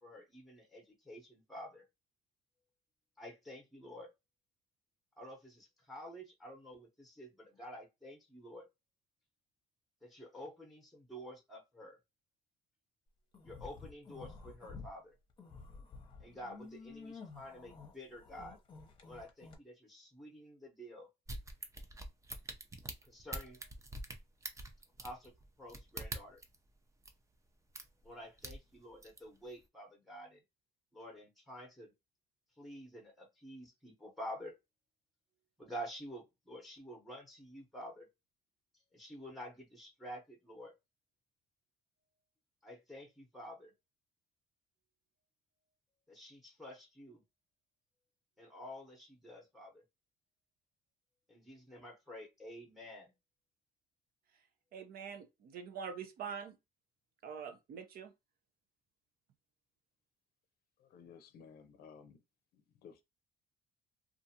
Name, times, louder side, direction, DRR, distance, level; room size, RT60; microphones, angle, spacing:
voice 1, 0.0-1.8 3.2-4.1 5.2-8.7 10.0-12.0 13.4-15.1 16.2-18.6 19.1-21.1 23.1-23.7 25.0-26.4 28.0-30.4 30.9-31.9 32.6-34.6 35.6-38.1 38.9-40.7 42.6-43.7 46.1-47.2 48.4-49.8 51.3-53.1, equal, ahead, 0.9 m, -49 dB
sound 1, 13.3-14.9 15.3-19.6, left 4 dB, 30° left, 0.8 m, -51 dB
sound 2, 21.3-26.6 27.0-27.1 27.8-28.1 28.4-29.2 29.6-29.7, right 2 dB, 20° right, 0.5 m, -44 dB
voice 2, 54.7-56.6 57.2-58.1, right 6 dB, 60° right, 0.7 m, -44 dB
voice 3, 60.8-62.2 62.5-63.0, left 6 dB, 65° left, 0.5 m, -56 dB
2.5 x 2.4 x 2.7 m
cardioid pair, 110°, 17 cm